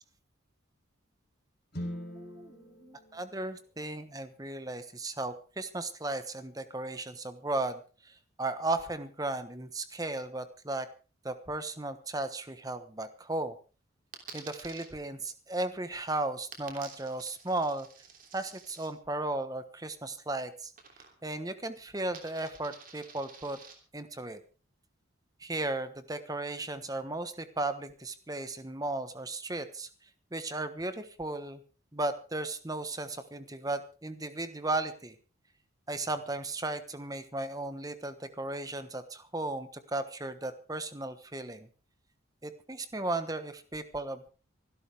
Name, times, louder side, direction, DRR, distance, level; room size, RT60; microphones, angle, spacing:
sound 1, 1.7-5.8, equal, 50° left, 3.8 m, -45 dB
voice 1, 1.7-7.8 8.4-10.9 11.2-13.5 14.3-17.9 18.3-20.7 21.2-23.6 23.9-24.4 25.4-29.9 30.3-31.6 31.9-35.1 35.9-41.7 42.4-44.3, right 2 dB, 20° right, 10 dB, 1.2 m, -35 dB
Coin (dropping), 14.1-14.9 16.5-18.9 20.8-21.4 21.7-23.7, right 6 dB, 40° right, 3.1 m, -50 dB
25.0 x 12.0 x 3.5 m, 0.36 s
head